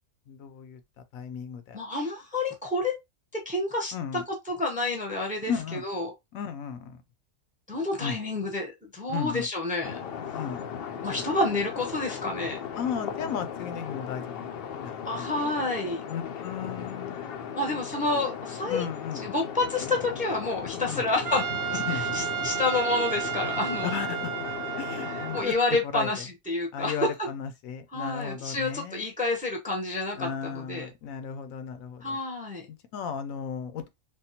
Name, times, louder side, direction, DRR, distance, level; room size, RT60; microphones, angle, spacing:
voice 1, 0.3-0.8 1.1-1.8 3.9-4.2 5.5-5.8 6.3-7.0 8.0-8.2 9.1-9.5 10.3-10.6 11.1-11.2 12.7-14.5 14.7-15.5 16.1-17.2 17.7-17.8 18.7-19.2 20.7-21.0 21.9-22.0 23.8-24.3 24.8-25.5 25.8-26.1 26.7-29.0 30.2-32.2 32.7-33.9, left 7 dB, 80° left, 1.0 m, -35 dB
voice 2, 1.7-2.9 3.5-3.9 4.5-6.1 7.7-10.0 11.0-12.6 15.0-16.0 17.5-18.8 19.2-21.4 21.9-23.9 25.0-27.1 27.9-30.9 32.0-32.7, left 2 dB, 10° right, 0.6 m, -29 dB
sound 1, 9.8-25.4, left 7 dB, 65° left, 0.6 m, -37 dB
Trumpet, 21.2-25.8, right 11 dB, 80° right, 0.4 m, -32 dB
3.5 x 2.2 x 2.7 m
omnidirectional pair, 1.4 m